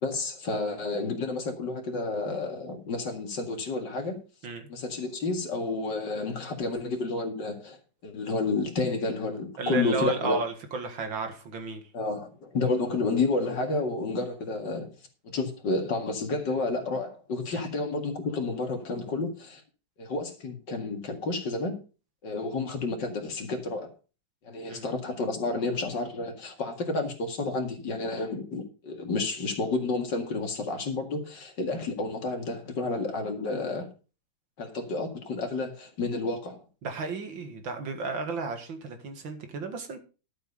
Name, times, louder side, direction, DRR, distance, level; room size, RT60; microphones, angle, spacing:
voice 1, 0.0-4.2 4.7-7.8 8.0-10.4 11.9-14.9 15.3-19.6 20.0-21.8 22.2-23.9 24.4-33.9 34.6-36.6, left 3 dB, 65° left, 2.6 m, -30 dB
voice 2, 9.6-11.8 17.5-17.6 24.7-24.9 36.8-40.0, right 3 dB, 80° right, 2.6 m, -33 dB
12.0 x 7.0 x 5.4 m
omnidirectional pair, 2.1 m